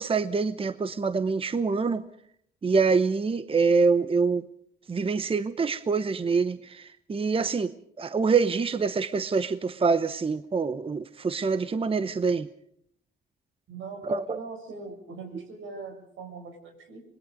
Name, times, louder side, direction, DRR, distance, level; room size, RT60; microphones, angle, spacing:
voice 1, 0.0-2.0 2.6-4.4 4.9-7.7 8.0-12.5 14.0-14.4, right 4 dB, 30° right, 12 dB, 0.9 m, -25 dB
voice 2, 13.7-17.0, right 4 dB, 75° right, 3 dB, 6.6 m, -41 dB
26.0 x 21.0 x 5.3 m, 0.69 s
cardioid pair, 90°, 20 cm